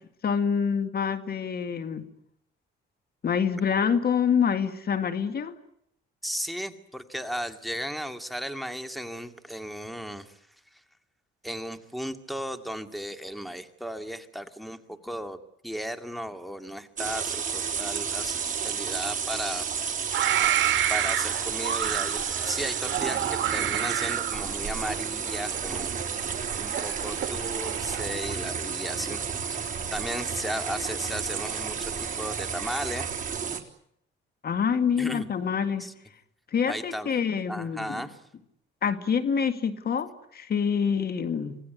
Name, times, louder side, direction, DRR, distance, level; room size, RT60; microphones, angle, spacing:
voice 1, 0.2-2.1 3.2-5.6 34.4-35.9 36.5-38.1 38.8-41.6, left 7 dB, 50° left, 10 dB, 2.0 m, -26 dB
voice 2, 6.2-10.4 11.4-15.4 15.6-19.7 20.0-20.2 20.9-22.2 22.4-25.9 26.6-29.2 29.9-33.1 35.0-35.3 35.8-35.9 36.7-37.1 37.5-38.2, equal, ahead, 8 dB, 2.2 m, -35 dB
sound 1, 17.0-33.6, right 7 dB, 40° right, 3.7 m, -31 dB
sound 2, 20.1-28.0, right 11 dB, 70° right, 1.8 m, -30 dB
26.5 x 18.0 x 9.8 m, 0.75 s
cardioid pair, 90°, 20 cm